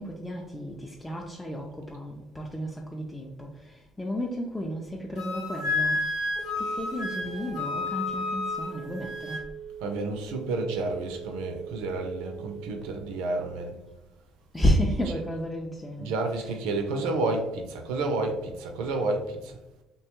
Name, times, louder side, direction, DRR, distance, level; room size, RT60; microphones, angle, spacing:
voice 1, 0.0-6.1 6.6-9.5 14.5-16.5, equal, 10° left, 0.4 m, -32 dB
Wind instrument woodwind instrument, 5.2-9.4, left 3 dB, 85° left, 0.7 m, -31 dB
Telephone, 6.2-13.1, right 8 dB, 25° left, 0.9 m, -42 dB
voice 2, 9.8-13.7 14.8-15.2 16.0-19.6, right 2 dB, 85° right, 0.4 m, -30 dB
2.7 x 2.2 x 2.9 m
supercardioid pair, 85°, 0 cm